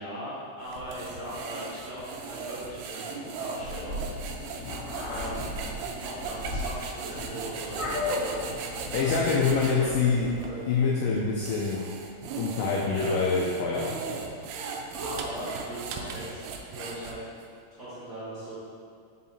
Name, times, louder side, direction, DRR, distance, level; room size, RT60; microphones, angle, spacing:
voice 1, 0.0-4.0 5.1-5.5 5.9-8.4 8.8-10.6 12.9-13.2 14.9-17.2 17.7-18.6, right 1 dB, 45° right, -15 dB, 1.5 m, -39 dB
sound 1, 0.6-9.8 10.4-10.5 11.2-17.4, right 5 dB, 90° right, 2.6 m, -38 dB
Meow, 3.6-10.5, left 2 dB, 65° left, 1.8 m, -36 dB
voice 2, 8.9-10.3 10.7-11.8 12.4-14.3, left 5 dB, 80° left, -3 dB, 1.9 m, -26 dB
5.7 x 5.1 x 4.1 m, 2.2 s
omnidirectional pair, 4.5 m